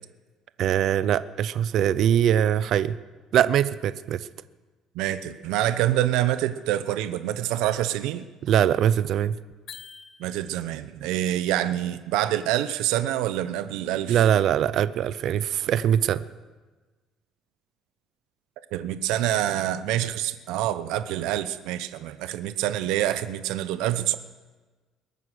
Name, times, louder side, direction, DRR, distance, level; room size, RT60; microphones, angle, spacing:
voice 1, 0.6-3.0 3.3-4.3 8.4-9.3 14.1-16.2, right 10 dB, 50° right, 15 dB, 0.5 m, -22 dB
voice 2, 4.9-8.3 10.2-14.2 18.7-24.2, right 13 dB, 85° right, 12 dB, 0.8 m, -26 dB
sound 1, 9.7-10.8, left 7 dB, 40° left, 0.7 m, -45 dB
21.5 x 9.4 x 6.4 m, 1.3 s
cardioid pair, 160°, 0 cm